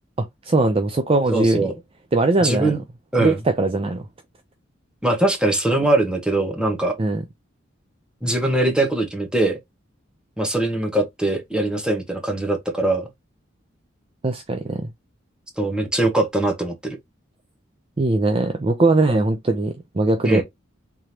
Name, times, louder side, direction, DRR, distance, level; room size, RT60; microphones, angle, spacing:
voice 1, 0.4-1.7 2.1-2.8 3.2-4.0 7.0-7.2 14.2-14.9 18.0-20.4, right 2 dB, 30° right, 0.5 m, -20 dB
voice 2, 1.3-1.7 2.4-2.8 3.1-3.4 5.0-7.0 8.2-9.6 10.4-13.1 15.6-17.0 20.2-20.4, right 2 dB, 5° right, 1.1 m, -21 dB
3.7 x 3.3 x 2.9 m
head